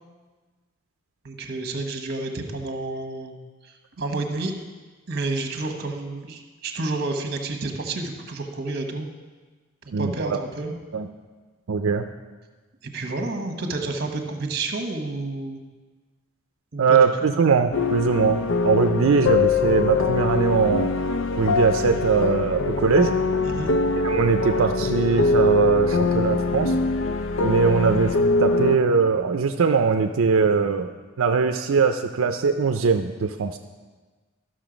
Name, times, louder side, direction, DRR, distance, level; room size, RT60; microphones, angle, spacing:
voice 1, 1.2-3.4 3.6-4.5 5.1-9.1 9.8-10.7 12.8-15.6 16.7-17.0 23.4-23.8, right 2 dB, 50° right, 4 dB, 1.1 m, -30 dB
voice 2, 9.9-10.4 10.9-11.1 11.7-12.1 16.8-20.9 21.4-23.1 24.0-26.8 27.4-30.9 31.2-33.6, right 5 dB, 90° right, 6 dB, 0.5 m, -21 dB
sound 1, 17.7-28.8, left 3 dB, 75° left, 0.5 m, -23 dB
12.5 x 6.4 x 5.1 m, 1.3 s
head